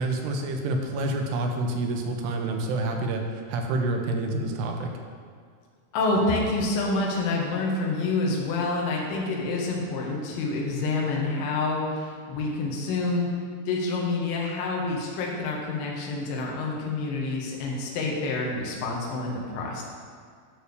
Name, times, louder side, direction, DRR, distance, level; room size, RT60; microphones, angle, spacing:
voice 1, 0.0-4.9, right 2 dB, 90° right, 3 dB, 2.8 m, -28 dB
voice 2, 5.9-13.3 13.7-19.8, left 3 dB, 70° left, -2 dB, 2.6 m, -27 dB
9.4 x 3.3 x 6.7 m, 2.1 s
omnidirectional pair, 4.7 m